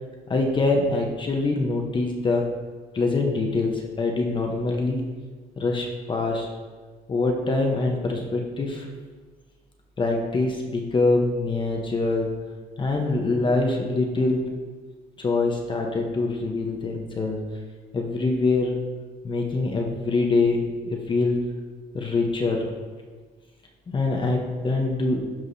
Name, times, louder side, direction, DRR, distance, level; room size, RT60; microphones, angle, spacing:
voice 1, 0.3-2.5 2.9-5.1 5.6-6.5 7.1-8.9 10.0-12.3 12.8-14.5 15.2-17.4 17.9-18.8 19.2-21.4 21.9-22.7 23.9-25.2, left 3 dB, 30° left, 1 dB, 0.9 m, -24 dB
12.0 x 4.7 x 2.7 m, 1.4 s
cardioid pair, 110°, 17 cm